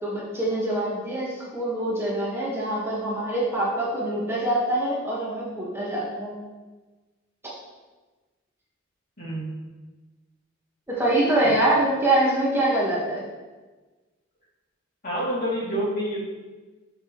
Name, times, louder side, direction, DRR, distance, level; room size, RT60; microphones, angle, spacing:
voice 1, 0.0-6.4 10.9-13.2, right 1 dB, 10° right, -6 dB, 1.6 m, -24 dB
voice 2, 9.2-9.6 15.0-16.2, equal, 45° left, -7 dB, 3.1 m, -27 dB
13.5 x 6.0 x 3.2 m, 1.3 s
head